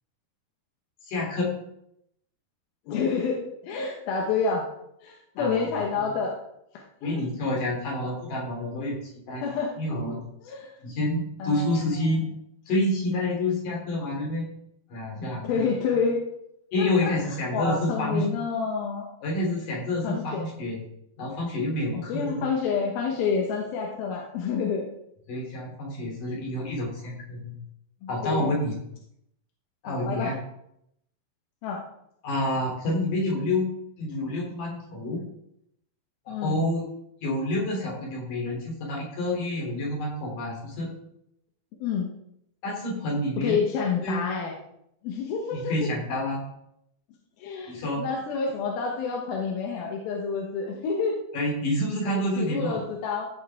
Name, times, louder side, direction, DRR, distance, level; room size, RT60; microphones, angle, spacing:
voice 1, 1.0-1.5 5.4-5.6 5.9-6.0 7.0-9.0 9.3-9.4 9.8-10.2 10.8-12.2 12.7-14.5 14.9-15.7 16.7-18.3 19.2-20.8 21.2-22.4 25.3-27.6 28.1-28.7 29.8-30.3 32.2-33.7 34.0-35.2 36.3-36.8 37.2-40.9 42.6-43.6 44.0-44.2 45.5-46.4 47.7-48.0 51.3-52.8, left 1 dB, 65° left, -2 dB, 4.8 m, -28 dB
voice 2, 2.9-4.6 5.0-6.3 6.7-7.1 9.4-9.7 10.4-10.7 11.4-12.3 15.4-16.2 16.8-19.1 20.0-20.5 21.9-24.8 28.0-28.5 29.9-30.3 31.6-31.8 36.3-36.6 41.8-42.1 43.4-44.5 45.0-45.9 47.4-51.2 52.1-53.3, left 5 dB, 90° left, -1 dB, 3.1 m, -29 dB
15.5 x 7.3 x 3.6 m, 0.78 s
omnidirectional pair, 4.1 m